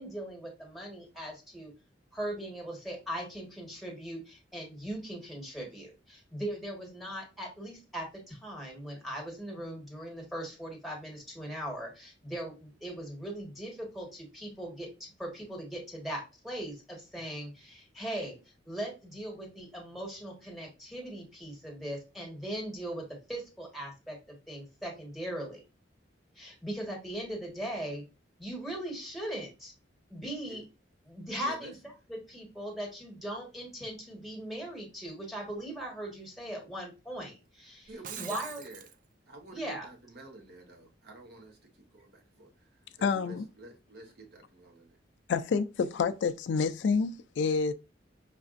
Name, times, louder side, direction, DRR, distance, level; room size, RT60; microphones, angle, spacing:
voice 1, 0.0-1.7 2.1-18.4 18.7-25.6 26.3-28.0 28.4-29.7 30.1-30.6 31.1-31.7 32.1-37.9 38.2-38.6 39.5-39.9 43.1-43.3, right 1 dB, ahead, 1.4 m, -39 dB
voice 2, 31.4-31.7 37.9-38.9 39.3-45.0, right 2 dB, 60° right, 1.1 m, -50 dB
Shatter, 37.9-39.0, right 8 dB, 45° right, 0.4 m, -43 dB
voice 3, 43.0-43.5 45.3-47.7, left 5 dB, 70° left, 0.3 m, -28 dB
5.8 x 2.4 x 2.5 m
head